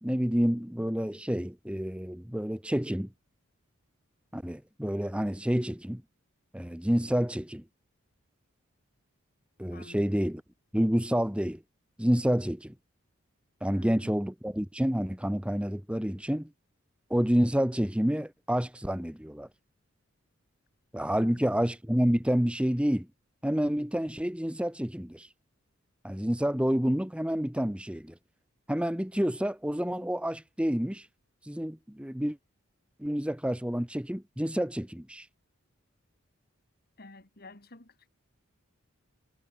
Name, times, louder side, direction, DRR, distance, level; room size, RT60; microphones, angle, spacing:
voice 1, 0.0-3.1 4.3-6.0 6.5-7.6 9.6-10.4 10.7-11.6 12.0-12.7 13.6-16.5 17.1-19.5 20.9-23.1 23.4-25.3 26.0-28.2 28.7-31.1 31.4-32.4 33.0-35.3, equal, 5° right, 1.0 m, -28 dB
voice 2, 9.7-10.3 13.7-14.2 21.1-21.4 37.0-38.1, left 2 dB, 45° left, 2.6 m, -51 dB
head